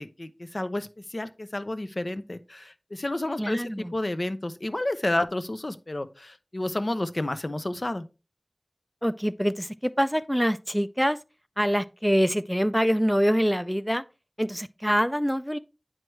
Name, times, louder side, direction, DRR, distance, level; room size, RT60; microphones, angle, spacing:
voice 1, 0.0-8.0, left 1 dB, 55° left, 0.6 m, -31 dB
voice 2, 3.4-3.9 9.0-11.2 11.6-14.0 14.4-15.6, equal, ahead, 0.3 m, -25 dB
8.7 x 4.7 x 3.1 m
wide cardioid pair, 45°, 0 cm